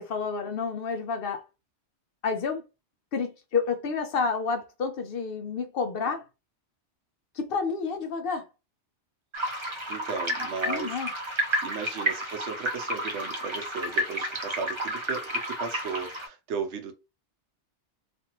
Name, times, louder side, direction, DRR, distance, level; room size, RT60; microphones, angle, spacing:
voice 1, 0.0-1.5 2.2-2.6 3.1-6.2 7.3-8.5 10.7-11.1, left 5 dB, 65° left, 0.7 m, -29 dB
sound 1, 9.3-16.3, right 1 dB, 30° right, 0.7 m, -31 dB
voice 2, 9.9-10.9 11.6-16.9, right 5 dB, 75° right, 1.0 m, -35 dB
2.5 x 2.5 x 2.8 m
omnidirectional pair, 1.2 m